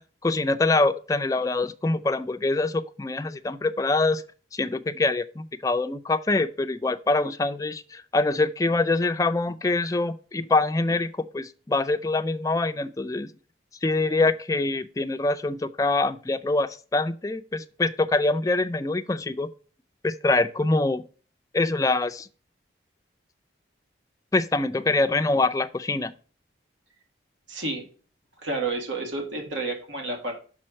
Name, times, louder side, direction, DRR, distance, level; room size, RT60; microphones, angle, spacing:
voice 1, 0.0-4.2 4.5-13.3 13.8-19.5 20.0-21.0 21.5-22.3 24.3-26.1, left 2 dB, 20° left, 0.4 m, -24 dB
voice 2, 27.5-27.8 28.4-30.3, right 3 dB, 75° right, 1.9 m, -30 dB
6.3 x 4.4 x 6.3 m
head